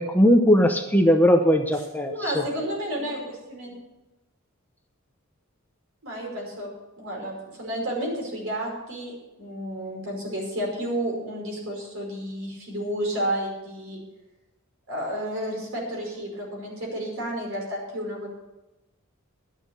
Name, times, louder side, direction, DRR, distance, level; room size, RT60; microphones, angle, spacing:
voice 1, 0.0-2.4, equal, 10° left, 4 dB, 0.8 m, -19 dB
voice 2, 2.1-3.7 6.0-6.7 7.0-14.0 14.9-18.3, right 1 dB, 65° right, -1 dB, 5.4 m, -31 dB
12.5 x 9.2 x 6.6 m, 0.98 s
head